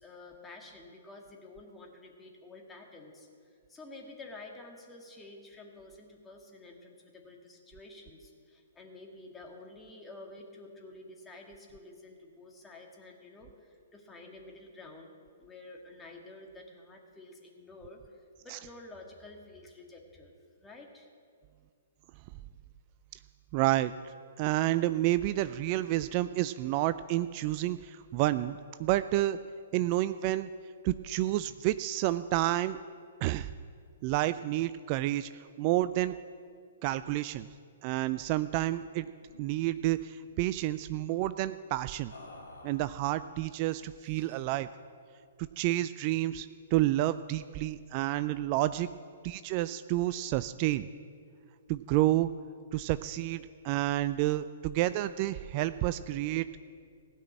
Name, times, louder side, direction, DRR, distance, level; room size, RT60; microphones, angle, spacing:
voice 1, 0.0-20.3 20.6-21.1, left 2 dB, 10° left, 1 dB, 1.9 m, -50 dB
voice 2, 23.5-23.9 24.4-29.4 29.7-30.5 30.8-32.8 33.2-33.5 34.0-36.1 36.8-37.5 37.8-39.1 39.4-42.1 42.6-44.7 45.4-48.9 49.2-50.9 51.7-52.3 52.7-56.6, right 15 dB, 40° right, 13 dB, 0.3 m, -29 dB
sound 1, 38.8-39.0 39.2-39.4 39.8-40.5 42.1-43.3 44.0-44.6, left 2 dB, 80° left, 2.3 m, -52 dB
16.5 x 5.9 x 8.8 m, 2.3 s
hypercardioid pair, 125°, 0 cm